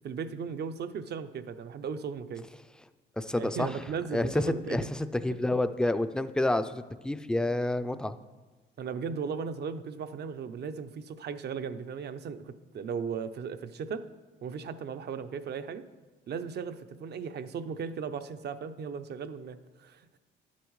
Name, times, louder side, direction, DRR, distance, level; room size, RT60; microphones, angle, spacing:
voice 1, 0.0-2.4 3.3-4.8 8.8-14.0 14.4-15.8 16.3-20.0, right 6 dB, 55° right, 11 dB, 0.6 m, -36 dB
voice 2, 3.2-3.8 4.1-8.1, left 1 dB, 5° left, 11 dB, 0.4 m, -29 dB
10.5 x 8.3 x 3.1 m, 1.3 s
cardioid pair, 90°, 20 cm